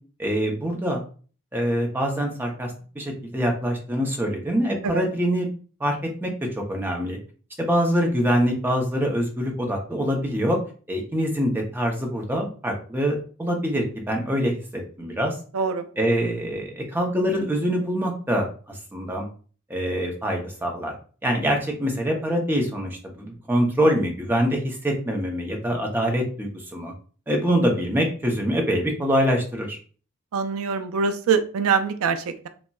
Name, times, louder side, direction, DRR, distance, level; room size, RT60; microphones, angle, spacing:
voice 1, 0.2-1.0 1.5-2.7 3.0-5.5 5.8-5.9 6.2-6.3 6.7-7.2 7.6-10.6 10.9-15.3 16.0-19.3 19.7-20.9 21.2-26.9 27.3-29.8, equal, 10° right, 1 dB, 0.5 m, -24 dB
voice 2, 15.5-15.8 30.3-32.5, right 6 dB, 75° right, 9 dB, 0.4 m, -24 dB
3.9 x 2.1 x 2.3 m, 0.40 s
head